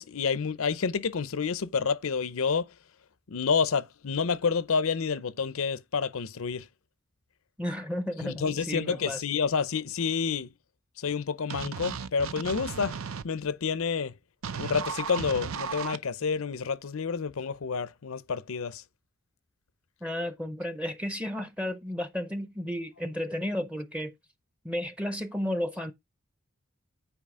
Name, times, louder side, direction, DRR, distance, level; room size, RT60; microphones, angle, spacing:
voice 1, 0.0-2.7 3.3-6.7 8.2-10.5 11.0-13.0 13.2-14.1 14.6-18.8, left 5 dB, 80° left, 0.6 m, -29 dB
voice 2, 7.6-9.2 20.0-24.1 24.6-25.9, left 1 dB, 5° right, 0.6 m, -33 dB
sound 1, 11.5-13.2 14.4-16.0, right 6 dB, 75° right, 0.6 m, -35 dB
8.9 x 4.7 x 3.7 m
head